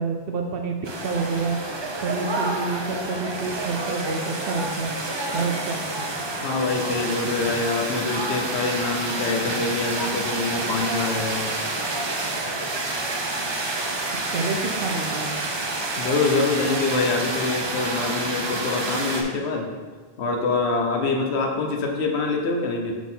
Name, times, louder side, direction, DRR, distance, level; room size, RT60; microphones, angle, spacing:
voice 1, 0.0-1.6 2.0-4.9 5.3-5.8 14.3-15.3, right 4 dB, 65° right, 3 dB, 0.8 m, -28 dB
sound 1, 0.8-19.2, right 2 dB, 35° right, 0.5 m, -28 dB
voice 2, 6.4-11.5 16.0-19.7 20.2-22.9, left 3 dB, 90° left, 2 dB, 1.1 m, -25 dB
4.7 x 4.0 x 5.5 m, 1.4 s
omnidirectional pair, 1.1 m